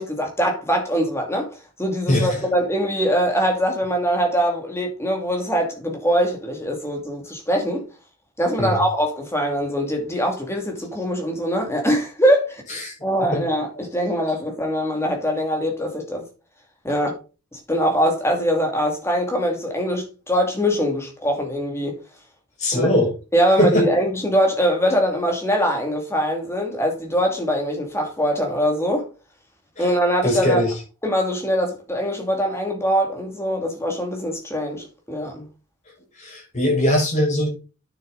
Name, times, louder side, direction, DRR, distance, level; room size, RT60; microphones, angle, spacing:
voice 1, 0.0-1.5 1.8-7.8 8.4-12.6 13.0-16.3 16.8-17.1 17.5-22.0 22.7-22.9 23.3-29.1 29.8-30.6 31.0-35.5, equal, 10° left, 2.7 m, -22 dB
voice 2, 2.1-2.4 8.6-8.8 12.7-12.9 13.3-13.4 22.6-23.1 23.6-23.9 29.8-29.9 30.2-30.7 36.2-37.5, left 1 dB, 30° left, 5.9 m, -20 dB
9.1 x 7.1 x 4.1 m
head